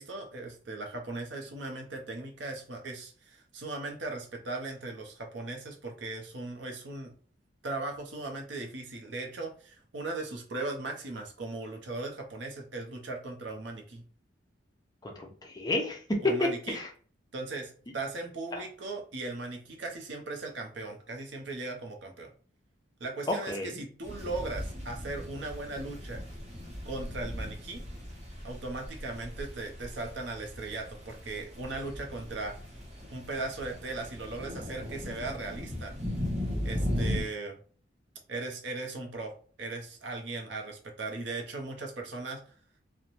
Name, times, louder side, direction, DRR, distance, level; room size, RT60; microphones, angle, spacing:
voice 1, 0.0-7.1 7.6-14.0 16.2-16.8 17.3-22.3 23.0-26.2 26.8-27.8 28.4-32.5 33.1-35.9 36.6-37.6 38.3-39.3 39.6-42.4, right 2 dB, 70° right, 2 dB, 0.7 m, -38 dB
voice 2, 15.0-16.9 18.5-18.6 23.3-23.8, left 2 dB, 20° left, 1 dB, 0.5 m, -30 dB
sound 1, 24.0-37.2, left 1 dB, 35° right, 0.8 m, -38 dB
3.0 x 2.1 x 2.5 m, 0.42 s
head